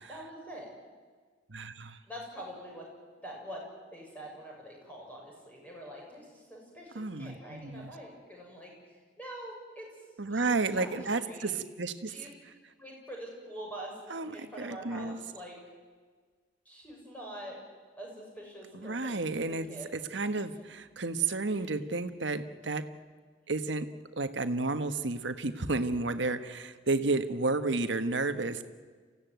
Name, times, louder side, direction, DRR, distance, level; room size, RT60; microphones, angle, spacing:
voice 1, 0.1-0.7 2.1-2.9 3.2-3.6 3.9-9.9 10.3-11.5 12.1-12.3 12.8-13.9 14.3-15.6 16.7-17.6 18.0-19.9 20.2-20.4 21.5-21.7, equal, 10° left, -2 dB, 7.1 m, -45 dB
voice 2, 1.5-2.0 6.9-7.9 10.2-12.2 14.1-15.2 18.7-19.7 19.9-22.9 23.5-23.9 24.2-28.6, right 3 dB, 75° right, 10 dB, 1.4 m, -32 dB
27.5 x 15.5 x 9.3 m, 1.5 s
head